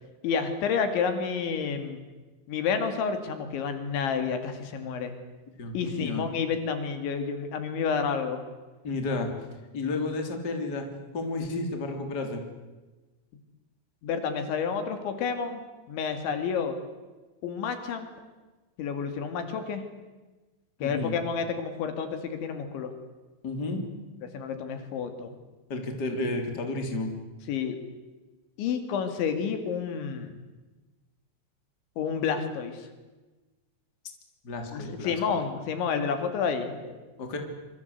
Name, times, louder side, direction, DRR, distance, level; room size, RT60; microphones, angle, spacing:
voice 1, 0.2-2.0 2.5-5.1 5.7-8.4 14.0-15.6 15.9-16.8 17.4-18.1 18.8-19.8 20.8-22.9 24.2-25.3 27.5-27.8 28.6-30.3 32.0-32.9 34.7-36.9, left 6 dB, 75° left, 8 dB, 4.6 m, -30 dB
voice 2, 5.6-6.2 8.8-9.3 9.7-10.9 11.1-12.4 20.8-21.1 23.4-23.9 25.7-27.1 34.4-35.4 37.2-37.4, left 2 dB, 25° left, 4 dB, 3.3 m, -31 dB
27.0 x 24.5 x 8.2 m, 1.2 s
omnidirectional pair, 5.5 m